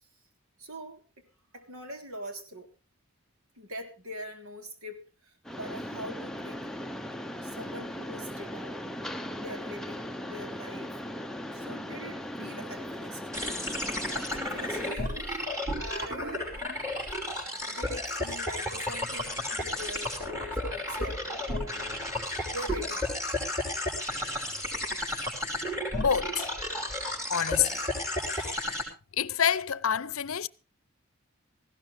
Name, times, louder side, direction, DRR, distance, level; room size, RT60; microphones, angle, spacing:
voice 1, 0.6-1.0 1.5-2.7 3.5-6.7 7.4-8.8 9.3-11.0 11.5-13.3 14.0-15.4 15.8-16.6 17.6-22.0 22.2-23.1, equal, 80° right, 3.3 m, -43 dB
Mechanisms, 5.5-15.0, equal, ahead, 0.7 m, -38 dB
sound 1, 13.3-28.8, left 1 dB, 15° right, 5.5 m, -33 dB
voice 2, 26.0-26.5 27.3-27.8 28.3-28.6 29.2-30.5, left 8 dB, 75° left, 0.7 m, -27 dB
18.0 x 16.0 x 3.3 m
head